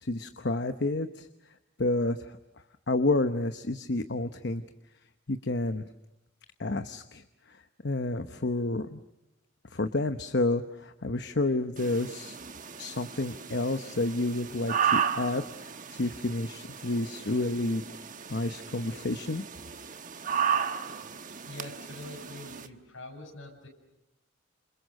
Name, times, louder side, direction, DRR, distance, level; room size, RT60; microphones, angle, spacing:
voice 1, 0.0-1.3 1.8-2.4 2.9-4.6 5.3-5.8 6.6-7.6 7.8-9.0 9.7-12.4 12.8-17.8 18.3-19.4, left 2 dB, 55° left, 9 dB, 1.0 m, -30 dB
sound 1, 11.8-22.7, right 8 dB, 40° right, 1.2 m, -34 dB
voice 2, 21.0-23.7, left 2 dB, 70° left, 2 dB, 7.7 m, -45 dB
29.5 x 28.0 x 6.5 m, 0.91 s
head